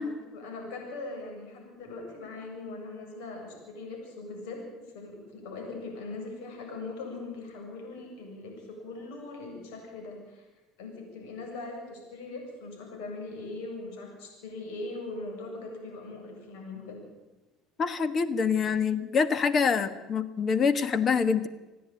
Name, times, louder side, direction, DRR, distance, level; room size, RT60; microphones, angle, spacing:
voice 1, 0.0-4.6 4.9-10.5 10.8-17.0, left 3 dB, 85° left, 1 dB, 7.6 m, -40 dB
voice 2, 17.8-21.5, left 5 dB, 35° left, 12 dB, 1.4 m, -26 dB
28.5 x 10.0 x 9.1 m, 1.1 s
supercardioid pair, 105°, 0 cm